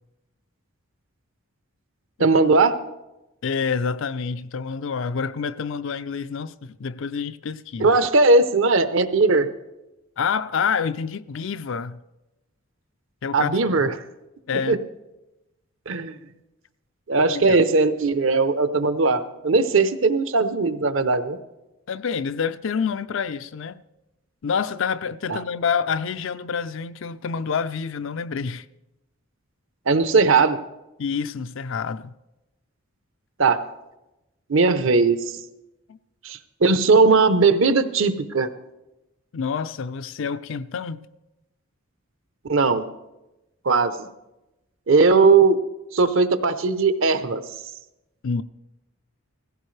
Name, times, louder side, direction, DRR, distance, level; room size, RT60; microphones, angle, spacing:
voice 1, 2.2-2.8 7.8-9.5 13.3-13.9 14.7-14.8 15.9-16.2 17.1-21.4 25.3-25.4 29.9-30.6 33.4-33.6 34.5-35.2 36.2-38.5 42.5-42.8 43.7-43.9 44.9-45.6 45.9-47.4, right 4 dB, 60° right, 0.7 m, -18 dB
voice 2, 3.4-8.0 10.2-12.0 13.2-13.9 14.5-14.8 17.2-17.6 21.9-23.8 24.4-28.6 31.0-32.1 35.9-36.0 39.3-41.1 48.2-48.4, left 6 dB, 60° left, 0.4 m, -27 dB
17.0 x 15.5 x 3.3 m
head